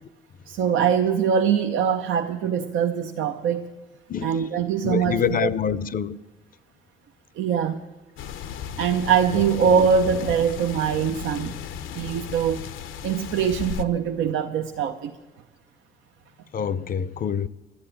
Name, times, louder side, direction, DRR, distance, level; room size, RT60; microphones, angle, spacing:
voice 1, 0.5-3.7 4.2-5.5 7.4-7.8 8.8-11.6 12.0-12.7 13.0-15.2, right 7 dB, 85° right, 0.7 m, -23 dB
voice 2, 4.8-6.2 9.3-9.4 16.5-17.5, left 7 dB, 45° left, 0.5 m, -26 dB
sound 1, 8.2-13.9, left 8 dB, 85° left, 0.7 m, -35 dB
12.0 x 9.6 x 10.0 m
cardioid pair, 90°, 20 cm